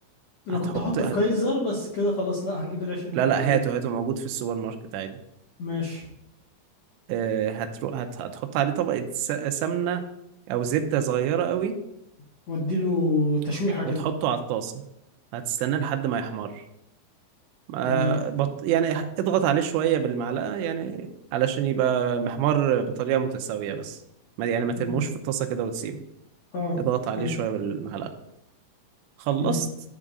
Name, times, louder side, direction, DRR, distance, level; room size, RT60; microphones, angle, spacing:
voice 1, 0.5-3.6 5.6-6.1 12.5-14.0 17.8-18.2 24.8-25.0 26.5-26.8 27.2-27.3 29.4-29.6, left 1 dB, 80° left, -4 dB, 1.5 m, -27 dB
voice 2, 3.1-5.2 7.1-10.0 10.5-11.8 14.0-14.8 15.3-16.6 17.7-24.0 24.4-26.0 26.8-28.1 29.2-29.7, right 9 dB, 85° right, 6 dB, 2.9 m, -26 dB
10.5 x 3.7 x 5.2 m, 0.82 s
omnidirectional pair, 5.2 m